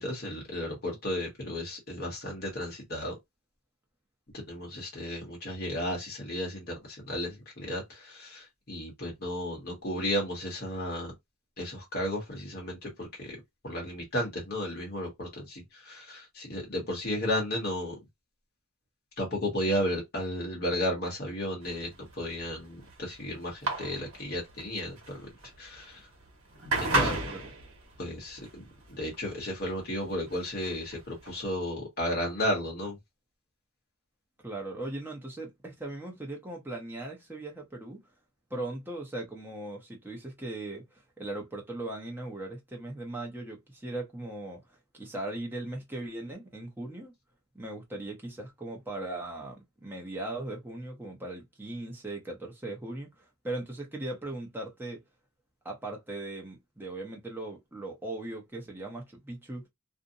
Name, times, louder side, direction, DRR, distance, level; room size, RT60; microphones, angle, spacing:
voice 1, 0.0-3.1 4.3-11.1 11.6-13.4 13.6-17.9 19.2-25.2 25.6-26.0 26.8-27.2 28.0-28.6 28.9-33.0, left 1 dB, 45° left, 0.9 m, -33 dB
sound 1, 21.6-31.5, right 2 dB, 65° right, 1.0 m, -34 dB
voice 2, 26.9-27.5 34.4-38.0 38.5-47.1 47.5-49.6 49.8-55.0 55.6-59.6, right 2 dB, 10° right, 0.6 m, -38 dB
2.6 x 2.1 x 2.6 m
head